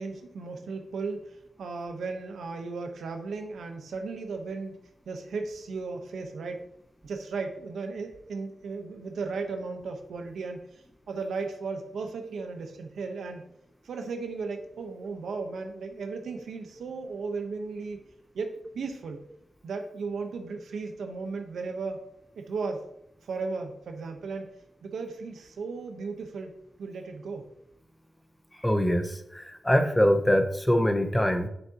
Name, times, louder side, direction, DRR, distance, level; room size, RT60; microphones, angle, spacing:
voice 1, 0.0-4.8 5.1-6.7 7.0-10.6 11.1-13.4 13.8-18.0 18.3-19.2 19.6-22.0 22.3-22.8 23.2-24.5 24.8-27.5, right 4 dB, 90° right, 5 dB, 1.0 m, -35 dB
voice 2, 28.6-31.5, equal, 10° left, 7 dB, 0.7 m, -24 dB
7.6 x 6.3 x 2.9 m, 0.77 s
wide cardioid pair, 100°, 0 cm